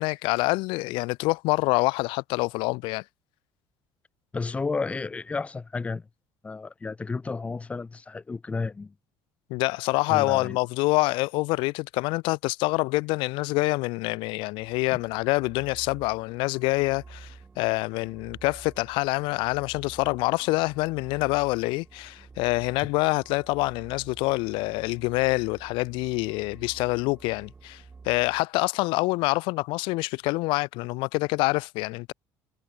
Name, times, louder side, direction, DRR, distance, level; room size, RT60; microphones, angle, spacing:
voice 1, 0.0-3.0 9.5-32.1, left 24 dB, 80° left, 0.7 m, -26 dB
voice 2, 4.3-6.1 6.4-8.9 10.1-10.6, left 4 dB, 15° left, 1.4 m, -32 dB
sound 1, 14.5-28.4, right 4 dB, 15° right, 2.0 m, -50 dB
cardioid pair, 155°, 8 cm